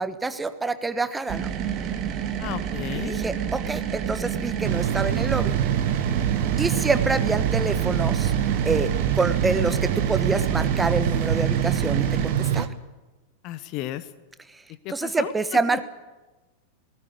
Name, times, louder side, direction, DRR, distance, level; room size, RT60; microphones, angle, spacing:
voice 1, 0.0-1.5 2.9-5.6 6.6-8.3 8.6-12.7 14.9-15.8, right 3 dB, 10° right, 12 dB, 1.2 m, -27 dB
sound 1, 1.3-12.4, right 9 dB, 35° right, 2.2 m, -29 dB
voice 2, 2.4-3.2 13.4-14.0 14.8-15.3, left 14 dB, 40° left, 13 dB, 1.1 m, -33 dB
sound 2, 4.6-12.7, right 9 dB, 55° right, 1.2 m, -25 dB
19.0 x 18.5 x 8.5 m, 1.1 s
figure-of-eight pair, 90°, 0 cm